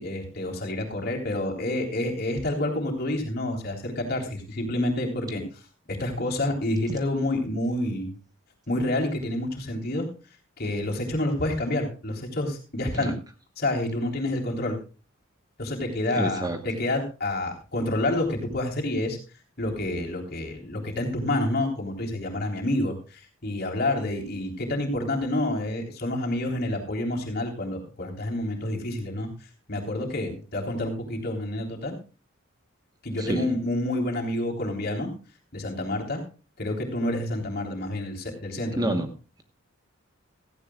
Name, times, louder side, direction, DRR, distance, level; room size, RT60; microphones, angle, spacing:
voice 1, 0.0-5.4 5.9-8.1 8.7-10.1 10.6-13.1 13.6-14.8 15.6-19.2 19.6-29.3 29.7-31.9 33.0-35.1 35.5-36.2 36.6-39.0, left 1 dB, 50° left, 1 dB, 3.6 m, -28 dB
voice 2, 16.1-16.6 33.2-33.5 38.8-39.1, right 1 dB, 20° right, 6 dB, 1.1 m, -28 dB
16.5 x 15.0 x 2.3 m, 0.34 s
head